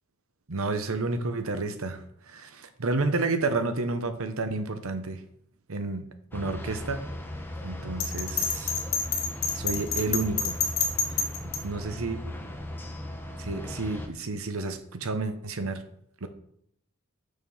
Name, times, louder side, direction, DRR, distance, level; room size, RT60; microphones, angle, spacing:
voice 1, 0.5-2.0 2.3-5.2 5.7-6.0 6.3-7.0 7.6-8.7 9.5-10.6 11.6-12.2 13.4-15.8 16.2-16.3, right 3 dB, 70° right, 9 dB, 0.9 m, -30 dB
sound 1, 6.3-14.1, left 1 dB, 10° left, 1.0 m, -38 dB
Bell, 8.0-11.6, left 6 dB, 60° left, 2.1 m, -28 dB
6.7 x 6.6 x 5.5 m, 0.70 s
head